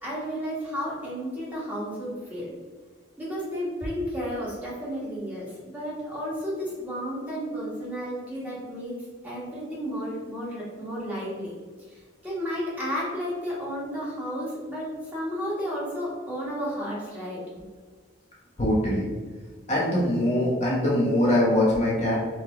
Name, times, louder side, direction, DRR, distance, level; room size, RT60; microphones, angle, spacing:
voice 1, 0.0-2.5 3.2-9.0 9.2-11.5 11.9-17.4, equal, 10° right, -8 dB, 1.4 m, -32 dB
voice 2, 18.6-19.1 19.7-22.1, left 1 dB, 35° left, -6 dB, 1.0 m, -22 dB
4.7 x 2.6 x 3.7 m, 1.5 s
head